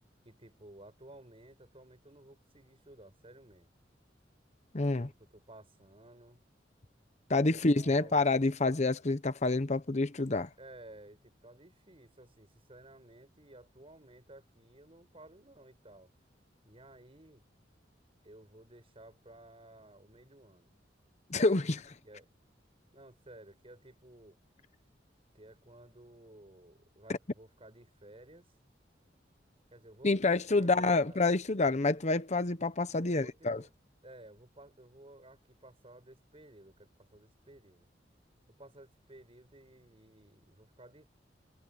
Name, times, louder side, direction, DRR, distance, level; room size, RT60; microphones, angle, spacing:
voice 1, 0.2-3.7 5.0-6.4 7.7-8.2 10.6-16.1 16.6-17.5 18.2-20.7 22.0-22.3 22.9-24.4 25.3-28.5 29.7-31.2 33.0-33.7 34.0-37.9 38.5-41.1, right 1 dB, 30° right, 7.5 m, -55 dB
voice 2, 4.7-5.1 7.3-10.5 21.3-22.0 30.0-33.6, left 3 dB, 40° left, 0.9 m, -28 dB
head